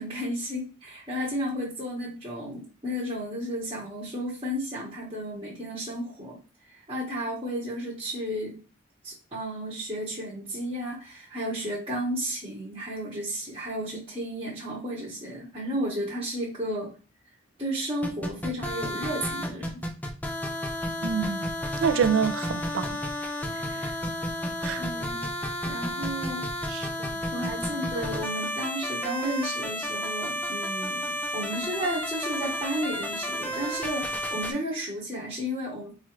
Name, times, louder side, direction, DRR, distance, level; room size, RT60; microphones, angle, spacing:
voice 1, 0.0-6.4 6.7-8.6 9.0-16.9 17.6-19.7 24.8-25.3 25.6-26.5 27.3-35.9, equal, 25° right, 1.0 m, -33 dB
sound 1, 18.0-34.5, left 1 dB, 10° left, 0.4 m, -32 dB
voice 2, 21.0-21.5 21.8-23.0 23.5-23.9 24.6-24.9 26.7-27.1, right 7 dB, 80° right, 0.3 m, -28 dB
4.2 x 2.4 x 3.0 m
head